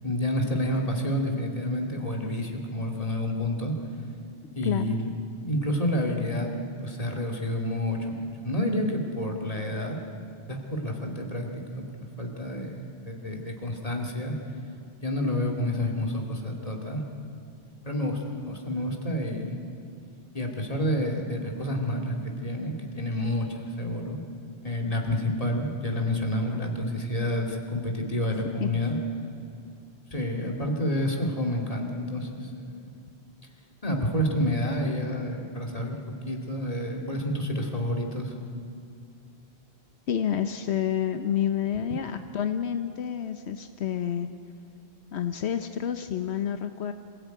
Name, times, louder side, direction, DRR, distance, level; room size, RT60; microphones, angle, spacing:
voice 1, 0.0-3.7 4.5-5.1 5.4-6.5 6.8-10.0 10.5-14.4 15.0-17.0 17.8-19.5 20.3-24.2 24.6-29.0 30.1-32.9 33.8-38.3, left 1 dB, 35° left, 1 dB, 2.8 m, -29 dB
voice 2, 4.4-5.0 20.5-20.6 28.6-28.8 40.1-44.3 45.1-46.9, left 9 dB, 80° left, 8 dB, 1.1 m, -29 dB
26.5 x 16.0 x 9.3 m, 2.4 s
omnidirectional pair, 1.1 m